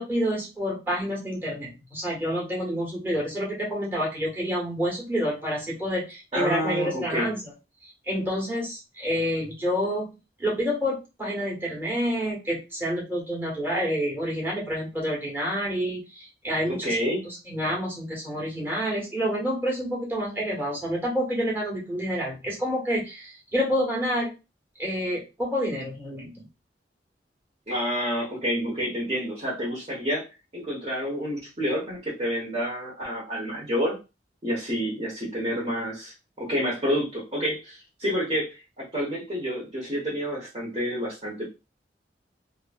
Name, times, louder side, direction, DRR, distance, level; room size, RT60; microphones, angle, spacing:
voice 1, 0.0-7.5 7.8-10.1 10.4-24.3 24.8-26.5, equal, 15° right, -3 dB, 1.1 m, -28 dB
voice 2, 6.3-7.3 16.7-17.2 27.7-30.2 30.5-34.0 34.4-38.5 38.8-41.5, equal, 35° right, -4 dB, 0.9 m, -29 dB
3.0 x 2.5 x 2.2 m, 0.27 s
head